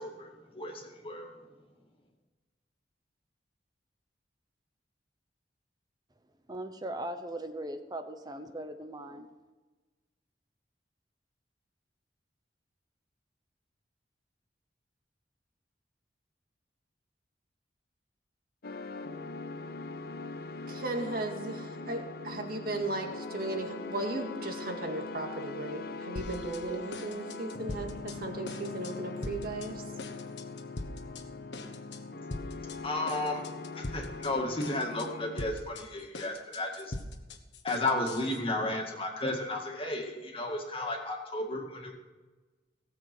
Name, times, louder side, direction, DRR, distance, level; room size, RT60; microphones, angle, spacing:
voice 1, 0.0-1.3 32.8-33.5 33.7-36.9 37.6-41.9, left 2 dB, 30° left, 1 dB, 2.1 m, -33 dB
voice 2, 6.5-9.3, right 1 dB, 25° right, 8 dB, 0.8 m, -39 dB
Oberheim Detuned Oscillators, 18.6-35.5, left 3 dB, 60° left, 0.7 m, -41 dB
voice 3, 20.7-29.8, right 2 dB, 55° right, 3 dB, 2.0 m, -36 dB
sound 1, 26.2-26.6 26.9-28.2 28.5-28.9 29.2-29.7 30.0-31.2 31.5-32.0 32.3-32.8 33.1-34.3 34.6-35.1 35.4-38.4, left 2 dB, 90° left, 1.3 m, -41 dB
17.5 x 7.6 x 6.1 m, 1.2 s
head